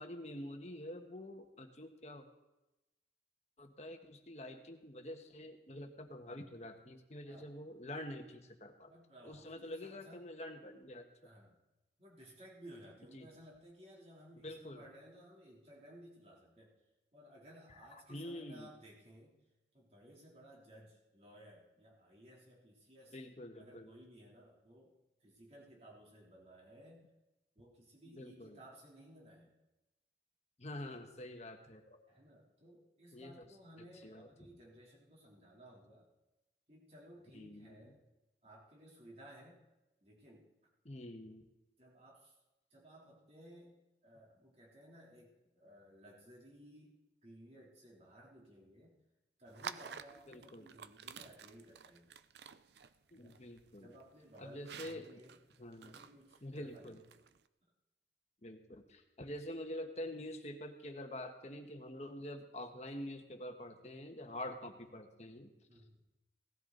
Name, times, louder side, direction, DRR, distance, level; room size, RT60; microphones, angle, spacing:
voice 1, 0.0-2.2 3.6-8.9 9.2-11.0 13.1-13.3 14.4-14.8 18.1-18.7 23.1-23.9 28.1-28.6 30.6-32.0 33.1-33.4 34.0-34.5 37.3-37.7 40.8-41.4 50.3-50.7 53.1-53.9 54.4-55.2 55.6-55.9 56.4-57.0 58.4-65.5, left 1 dB, 40° left, 5 dB, 1.4 m, -46 dB
voice 2, 8.9-10.3 11.2-11.6 12.0-16.7 17.1-19.3 19.7-23.2 23.6-24.9 25.2-27.1 27.6-29.6 32.1-36.1 36.7-38.0 38.4-39.6 40.0-40.7 41.8-42.4 42.7-49.0 49.4-52.1 53.1-53.4 53.7-55.5 55.9-57.0 65.7-66.0, equal, 35° right, -3 dB, 3.3 m, -58 dB
sound 1, 49.5-57.5, right 6 dB, 75° right, 0.5 m, -51 dB
17.5 x 13.5 x 4.0 m, 0.97 s
head